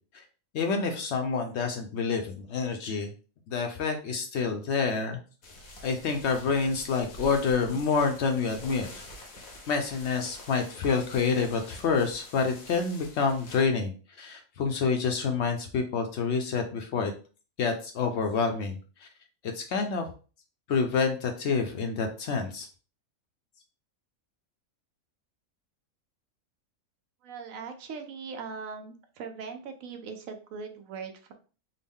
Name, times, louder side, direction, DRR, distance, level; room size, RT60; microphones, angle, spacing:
voice 1, 0.5-3.1 3.5-5.2 5.8-9.0 9.7-17.1 17.6-19.1 19.4-20.1 20.7-22.7, left 5 dB, 65° left, 4 dB, 0.7 m, -28 dB
sound 1, 5.4-13.6, left 1 dB, 90° left, 1.3 m, -47 dB
voice 2, 27.2-31.3, right 5 dB, 75° right, 6 dB, 1.0 m, -40 dB
3.8 x 2.1 x 3.5 m, 0.37 s
omnidirectional pair, 1.4 m